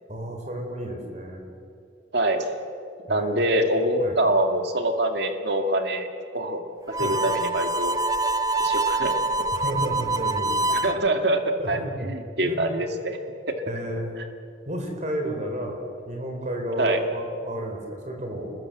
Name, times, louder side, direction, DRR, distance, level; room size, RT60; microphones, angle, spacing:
voice 1, 0.1-1.4 3.1-3.5 4.0-4.2 7.0-7.2 9.5-10.6 11.6-12.1 12.4-12.8 13.7-14.2 14.7-15.8 16.1-18.5, right 1 dB, 40° right, 3 dB, 4.3 m, -32 dB
voice 2, 2.1-2.5 3.1-6.1 6.3-6.6 7.0-8.0 8.6-9.2 10.7-11.4 11.7-13.2 16.8-17.0, right 1 dB, 60° right, 5 dB, 2.1 m, -24 dB
Harmonica, 6.9-11.0, right 2 dB, 20° right, 0.5 m, -25 dB
28.5 x 21.5 x 7.9 m, 2.4 s
head